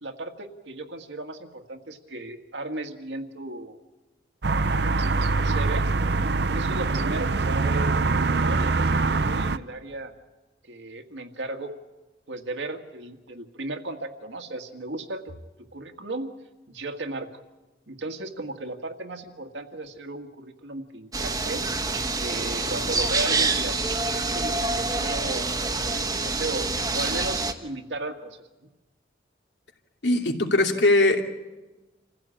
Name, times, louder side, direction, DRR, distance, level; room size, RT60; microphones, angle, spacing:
voice 1, 0.0-3.8 4.5-5.0 5.4-5.9 6.4-10.1 10.6-11.7 12.3-15.2 15.7-16.3 16.7-17.3 17.9-21.6 22.2-23.8 24.1-26.6 26.9-28.4, right 2 dB, 80° right, 4 dB, 1.8 m, -35 dB
sound 1, 4.4-9.6, right 3 dB, 65° right, 0.7 m, -23 dB
sound 2, 21.1-27.5, right 3 dB, 20° right, 1.1 m, -26 dB
voice 2, 30.0-31.2, left 2 dB, 75° left, 3 dB, 2.5 m, -20 dB
27.5 x 15.5 x 8.7 m, 1.2 s
head